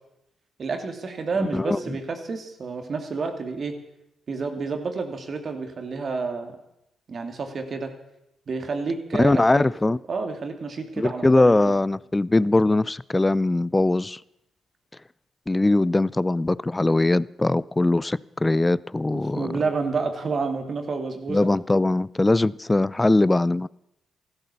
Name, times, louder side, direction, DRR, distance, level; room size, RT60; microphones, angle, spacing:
voice 1, 0.6-3.8 4.3-6.6 7.1-7.9 8.5-9.6 10.1-11.7 19.1-21.5, right 4 dB, 50° right, 2.5 m, -29 dB
voice 2, 1.4-1.8 9.1-10.0 11.0-14.2 15.5-19.6 21.3-23.7, left 2 dB, 20° left, 0.5 m, -21 dB
15.0 x 13.0 x 7.0 m
hypercardioid pair, 40°, 0 cm